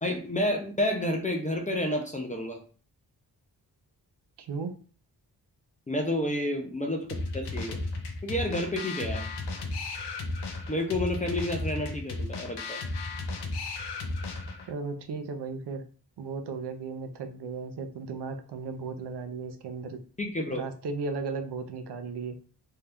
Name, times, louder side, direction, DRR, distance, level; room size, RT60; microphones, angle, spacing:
voice 1, 0.0-2.6 5.9-7.1 7.3-7.8 8.2-9.3 10.7-12.8 20.2-20.6, left 1 dB, 20° left, 2 dB, 0.4 m, -30 dB
voice 2, 4.4-4.8 14.7-15.8 16.2-20.0 20.5-22.4, right 4 dB, 75° right, 8 dB, 0.5 m, -35 dB
sound 1, 7.1-14.7, left 2 dB, 75° left, 0.6 m, -34 dB
2.7 x 2.3 x 3.3 m, 0.40 s
wide cardioid pair, 170°, 41 cm